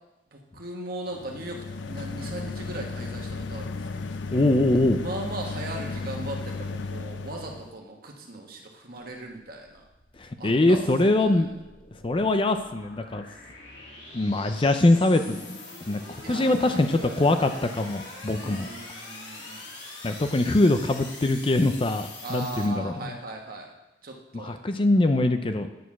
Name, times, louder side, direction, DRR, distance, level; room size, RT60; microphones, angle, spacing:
voice 1, 0.3-4.2 5.0-9.8 10.4-11.4 16.2-17.4 18.4-19.6 22.2-23.7 24.0-24.6, right 2 dB, 55° right, 1 dB, 1.5 m, -38 dB
sound 1, 1.1-7.7, left 3 dB, 90° left, 0.5 m, -34 dB
voice 2, 4.3-5.0 10.4-11.5 12.0-13.2 14.1-15.6 15.9-18.7 20.0-23.1 24.3-25.7, left 2 dB, 30° left, 7 dB, 0.5 m, -23 dB
sound 2, 9.5-22.7, left 2 dB, 75° left, 2.3 m, -44 dB
9.4 x 6.5 x 6.1 m, 0.97 s
head